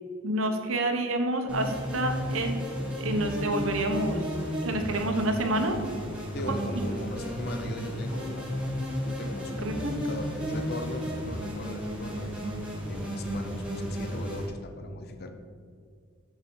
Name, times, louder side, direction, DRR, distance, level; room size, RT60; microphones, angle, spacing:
voice 1, 0.2-2.6 3.0-4.2 4.6-5.8 9.6-10.0, right 1 dB, 65° right, 4 dB, 1.1 m, -28 dB
sound 1, 1.5-14.5, equal, 5° right, 1.5 m, -33 dB
voice 2, 6.3-12.4 12.9-15.3, left 2 dB, 45° left, 6 dB, 0.7 m, -39 dB
7.7 x 6.3 x 5.6 m, 2.2 s
head